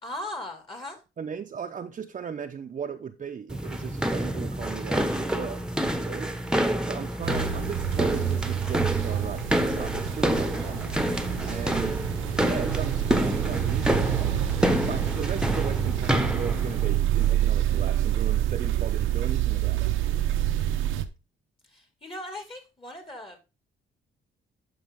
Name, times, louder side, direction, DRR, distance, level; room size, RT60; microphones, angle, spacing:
voice 1, 0.0-1.0 21.7-23.5, left 1 dB, 25° left, 2.2 m, -38 dB
voice 2, 1.2-5.6 5.9-6.3 6.8-10.8 11.4-12.0 12.4-19.9, right 7 dB, 40° right, 0.7 m, -37 dB
sound 1, 3.5-17.0, equal, 5° right, 1.1 m, -28 dB
sound 2, 7.2-21.1, right 12 dB, 85° right, 0.9 m, -27 dB
11.5 x 5.0 x 3.5 m
cardioid pair, 90°, 20 cm